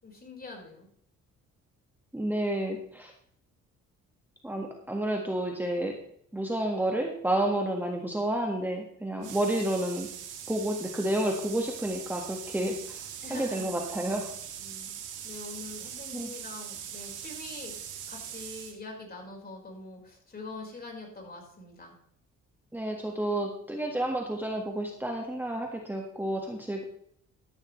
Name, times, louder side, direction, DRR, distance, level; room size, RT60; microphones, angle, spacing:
voice 1, 0.0-0.9 9.2-9.7 13.2-13.7 14.6-15.0 15.2-17.7 18.1-22.0, left 3 dB, 30° left, 0 dB, 4.7 m, -44 dB
voice 2, 2.1-3.1 4.4-6.0 6.3-10.1 10.5-13.0 13.3-14.3 16.1-16.3 22.7-26.8, right 1 dB, 5° right, 1 dB, 1.6 m, -30 dB
sound 1, 9.2-18.8, right 9 dB, 90° right, 1.8 m, -41 dB
13.5 x 10.5 x 3.2 m, 0.67 s
cardioid pair, 90°, 30 cm